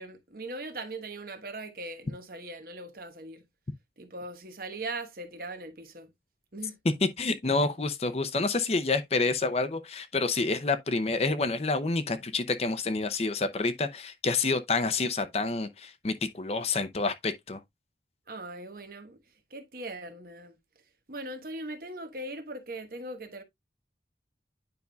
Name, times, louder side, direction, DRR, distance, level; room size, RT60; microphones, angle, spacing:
voice 1, 0.0-3.4 4.0-6.1 6.5-6.8 18.3-19.2 19.5-20.6 21.1-23.4, right 2 dB, 50° right, 1.2 m, -40 dB
voice 2, 7.2-17.6, left 3 dB, 35° left, 0.6 m, -28 dB
9.5 x 5.3 x 2.3 m
head